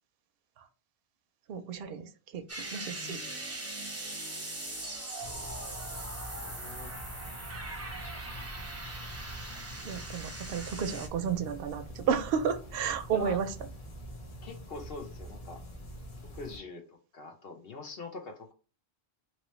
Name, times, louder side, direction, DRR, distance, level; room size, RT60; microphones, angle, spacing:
voice 1, 1.5-2.4 2.7-3.2 9.8-13.5, right 7 dB, 70° right, 9 dB, 0.7 m, -32 dB
sound 1, 2.5-11.1, right 2 dB, 15° right, 0.7 m, -40 dB
sound 2, 5.2-16.6, equal, 35° left, 0.9 m, -45 dB
voice 2, 6.4-6.9 7.2-7.6 8.0-8.2 13.1-13.4 14.4-15.6 16.3-18.5, left 3 dB, 65° left, 3 dB, 1.0 m, -44 dB
3.0 x 2.9 x 3.1 m, 0.35 s
omnidirectional pair, 1.1 m